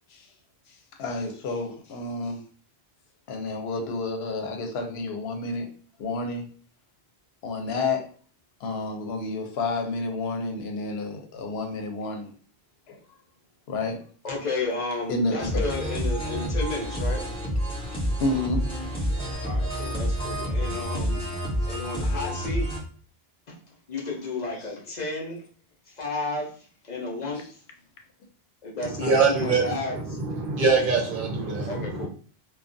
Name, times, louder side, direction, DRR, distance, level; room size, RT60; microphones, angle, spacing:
voice 1, 0.7-2.4 3.3-5.7 6.0-6.5 7.4-8.1 8.6-12.3 12.9-13.0 13.7-14.0 15.1-15.7 18.2-18.7 19.7-19.9, left 2 dB, 80° left, 0.8 m, -30 dB
voice 2, 14.2-17.2 19.4-21.2 21.7-22.7 23.5-25.4 25.9-27.4 28.6-30.0 31.7-32.1, left 3 dB, 50° left, 0.7 m, -32 dB
sound 1, 15.4-22.8, equal, 5° left, 0.6 m, -28 dB
voice 3, 28.8-32.1, right 4 dB, 60° right, 0.7 m, -24 dB
2.3 x 2.2 x 2.5 m
omnidirectional pair, 1.0 m